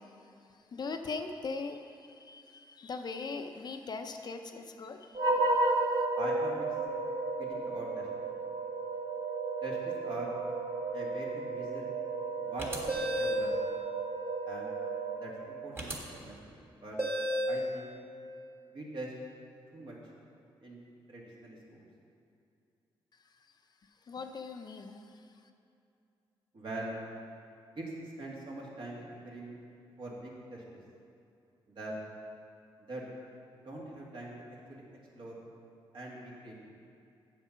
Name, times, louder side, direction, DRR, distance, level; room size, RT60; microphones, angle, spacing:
voice 1, 0.7-1.8 2.2-5.2 5.6-5.7 24.1-25.0, left 4 dB, 45° left, 6 dB, 0.6 m, -40 dB
sound 1, 5.1-15.7, right 3 dB, 40° right, 1.1 m, -33 dB
voice 2, 6.2-6.7 7.4-8.3 9.6-10.3 10.9-11.9 12.4-13.6 14.5-14.7 15.1-17.0 17.5-17.9 18.7-19.1 19.7-19.9 20.6-20.8 21.1-21.9 26.5-27.0 27.8-29.6 30.0-30.8 31.7-31.9 32.9-33.1 33.6-34.3 34.7-34.8 35.1-35.3 35.9-36.7, right 1 dB, 60° right, -3 dB, 2.1 m, -43 dB
sound 2, 12.6-13.5 15.8-15.9 17.0-17.6, equal, 25° right, 1.5 m, -31 dB
7.4 x 7.3 x 5.6 m, 2.6 s
cardioid pair, 85°, 10 cm